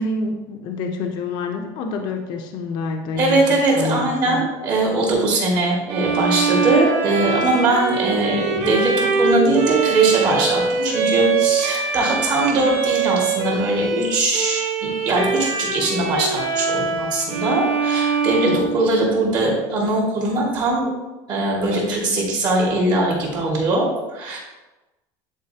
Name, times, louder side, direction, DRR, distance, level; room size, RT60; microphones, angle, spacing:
voice 1, 0.0-3.4 3.8-4.4 18.4-18.7, left 3 dB, 50° left, 3 dB, 0.7 m, -27 dB
voice 2, 3.2-20.9 21.3-24.4, right 2 dB, 45° right, -2 dB, 2.2 m, -21 dB
Bowed string instrument, 5.9-19.3, right 5 dB, 60° right, 1.3 m, -23 dB
9.9 x 4.4 x 2.8 m, 1.1 s
cardioid pair, 155°, 10 cm